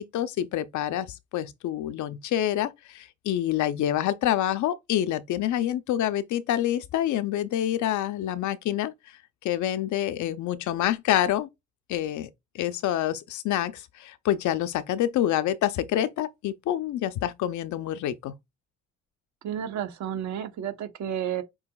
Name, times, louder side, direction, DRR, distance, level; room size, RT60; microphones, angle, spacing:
voice 1, 0.0-8.9 9.4-11.5 11.9-12.3 12.5-18.3, left 12 dB, 75° left, 0.6 m, -27 dB
voice 2, 19.4-21.4, right 9 dB, 70° right, 1.0 m, -31 dB
6.2 x 2.9 x 2.3 m
cardioid pair, 90°, 30 cm